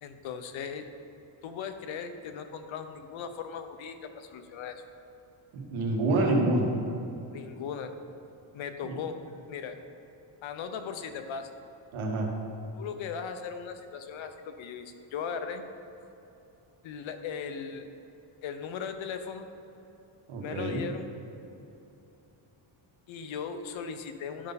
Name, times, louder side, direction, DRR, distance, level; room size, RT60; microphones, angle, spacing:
voice 1, 0.0-0.9 1.4-4.8 7.3-7.9 8.5-9.2 9.5-9.8 10.4-11.5 12.7-15.7 16.8-17.9 18.4-19.5 20.4-21.1 23.1-24.5, left 6 dB, 70° left, 8 dB, 0.8 m, -38 dB
voice 2, 5.5-6.7 8.8-8.9 11.9-12.3 20.3-20.8, right 2 dB, 85° right, 1 dB, 1.5 m, -27 dB
11.0 x 5.4 x 4.0 m, 2.9 s
cardioid pair, 150°, 48 cm